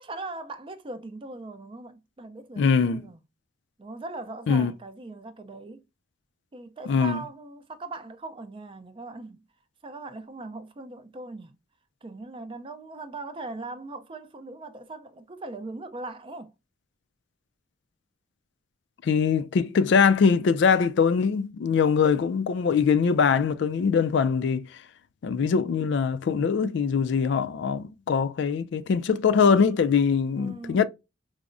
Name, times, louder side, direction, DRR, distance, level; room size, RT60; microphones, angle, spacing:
voice 1, 0.0-3.2 3.8-5.8 6.5-9.4 9.8-11.6 12.0-16.5 30.4-30.9, right 2 dB, 25° right, 0.4 m, -40 dB
voice 2, 2.6-3.0 4.5-4.7 6.9-7.2 19.0-24.7 25.2-30.9, left 6 dB, 60° left, 0.3 m, -22 dB
4.7 x 2.1 x 2.4 m
head